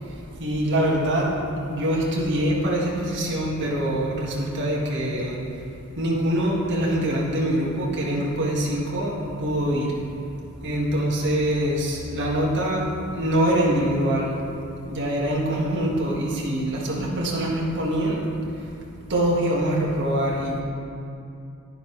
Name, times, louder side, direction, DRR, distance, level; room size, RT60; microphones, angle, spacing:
voice 1, 0.0-1.4 1.6-5.4 6.0-10.0 10.4-14.4 14.9-18.3 19.1-20.6, right 1 dB, 55° right, -4 dB, 1.8 m, -24 dB
11.0 x 11.0 x 3.3 m, 2.6 s
head